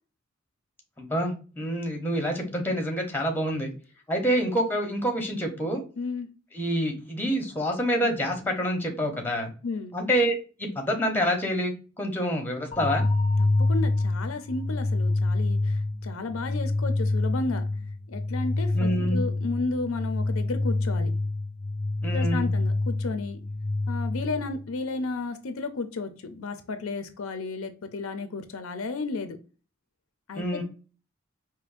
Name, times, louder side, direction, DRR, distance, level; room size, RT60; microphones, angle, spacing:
voice 1, 1.0-3.7 4.1-5.8 6.5-9.5 9.9-10.3 10.6-13.0 18.7-19.2 22.0-22.5 30.4-30.6, equal, 10° left, 3 dB, 0.9 m, -27 dB
voice 2, 6.0-6.3 9.6-10.0 13.4-17.6 18.1-21.1 22.1-23.4 23.9-29.4 30.3-30.6, left 3 dB, 80° left, 8 dB, 0.6 m, -33 dB
sound 1, 12.7-24.7, left 2 dB, 30° left, 0.6 m, -27 dB
5.1 x 2.1 x 2.5 m, 0.35 s
head